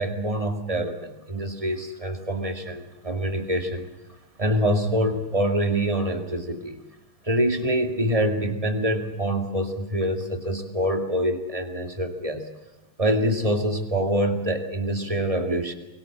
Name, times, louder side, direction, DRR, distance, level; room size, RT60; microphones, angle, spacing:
voice 1, 0.0-3.9 4.4-6.8 7.3-12.4 13.0-15.7, equal, 15° right, 6 dB, 2.2 m, -25 dB
23.5 x 23.0 x 7.5 m, 0.98 s
omnidirectional pair, 2.3 m